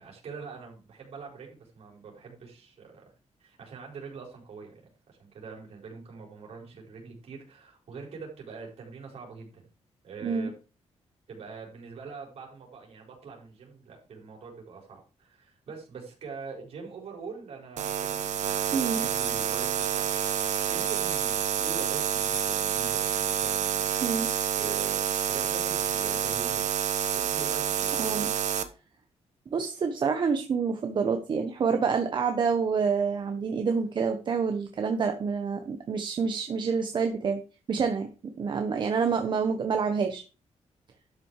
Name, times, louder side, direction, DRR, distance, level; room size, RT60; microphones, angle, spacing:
voice 1, 0.0-3.1 3.4-4.8 5.1-9.7 10.0-10.5 11.3-23.9 24.6-26.7 27.1-28.1, right 5 dB, 60° right, 0 dB, 4.8 m, -44 dB
sound 1, 17.8-28.6, right 9 dB, 90° right, 1.1 m, -28 dB
voice 2, 18.7-19.1 24.0-24.3 28.0-28.3 29.5-37.4 37.7-40.2, right 5 dB, 40° right, 5 dB, 1.1 m, -27 dB
12.0 x 6.1 x 4.8 m, 0.33 s
wide cardioid pair, 165°, 12 cm